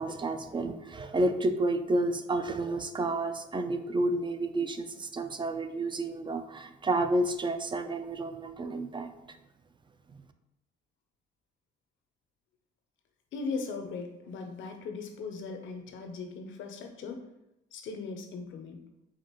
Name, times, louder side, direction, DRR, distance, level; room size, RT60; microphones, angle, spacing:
voice 1, 0.0-9.1, right 2 dB, 25° right, 8 dB, 0.3 m, -30 dB
voice 2, 13.3-17.3 17.7-18.8, left 4 dB, 75° left, 4 dB, 0.7 m, -38 dB
4.9 x 2.6 x 2.9 m, 0.86 s
cardioid pair, 90°, 20 cm